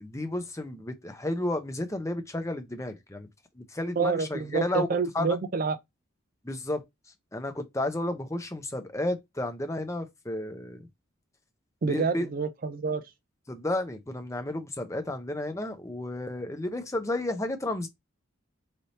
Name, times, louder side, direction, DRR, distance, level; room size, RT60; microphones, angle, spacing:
voice 1, 0.0-3.3 3.6-4.9 5.1-5.4 6.4-6.8 7.3-10.8 11.9-12.3 13.5-17.9, left 1 dB, 15° left, 0.6 m, -32 dB
voice 2, 4.0-5.8 11.8-13.0, right 5 dB, 45° right, 0.4 m, -28 dB
3.3 x 2.7 x 4.0 m
head